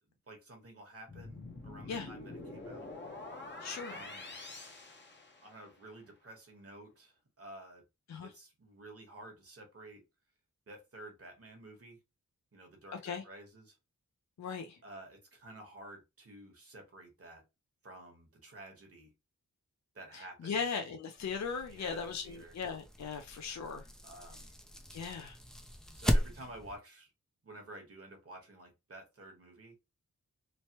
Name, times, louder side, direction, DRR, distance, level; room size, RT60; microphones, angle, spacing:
voice 1, 0.3-2.9 3.9-4.4 5.4-7.8 8.2-10.0 10.7-12.0 12.5-13.8 14.8-17.4 17.8-19.1 19.9-20.6 21.7-22.5 24.0-24.5 25.9-27.1 27.4-29.7, right 1 dB, 45° right, 1.1 m, -51 dB
sound 1, 1.1-5.8, left 2 dB, 35° left, 0.8 m, -46 dB
voice 2, 3.6-4.0 8.1-8.3 13.0-13.2 14.4-14.8 20.1-23.9 24.9-25.4, left 5 dB, 55° left, 0.5 m, -38 dB
sound 2, 21.2-26.8, equal, ahead, 0.4 m, -37 dB
3.1 x 2.1 x 2.8 m
wide cardioid pair, 90°, 33 cm